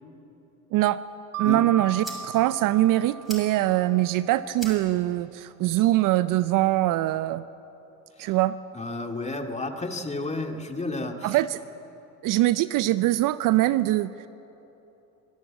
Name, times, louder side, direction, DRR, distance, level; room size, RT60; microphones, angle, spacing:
voice 1, 0.7-1.0 1.4-7.4 8.2-8.6 11.2-11.6 12.2-14.3, right 16 dB, 50° right, 15 dB, 0.6 m, -23 dB
Mallet percussion, 1.3-4.1, right 5 dB, 85° right, 0.8 m, -37 dB
sound 1, 1.4-7.4, equal, ahead, 6.4 m, -47 dB
voice 2, 8.7-11.4, left 2 dB, 15° left, 4 dB, 2.2 m, -31 dB
24.0 x 13.5 x 8.6 m, 3.0 s
hypercardioid pair, 85°, 42 cm